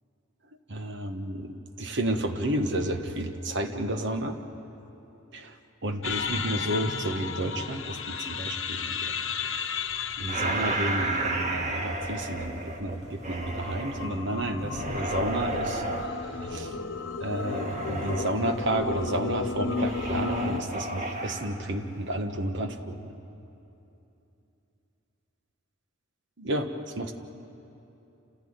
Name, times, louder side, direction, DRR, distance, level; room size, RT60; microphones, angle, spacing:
voice 1, 0.7-4.4 5.3-5.5 5.8-9.3 10.2-16.7 17.2-23.1 26.4-27.1, right 1 dB, 60° right, 6 dB, 1.4 m, -31 dB
sound 1, 6.0-20.6, left 5 dB, 70° left, 1.1 m, -34 dB
sound 2, 10.3-14.1 14.6-16.1 17.3-18.4 19.7-21.5, right 2 dB, 35° right, 1.9 m, -32 dB
28.5 x 15.0 x 8.9 m, 2.9 s
head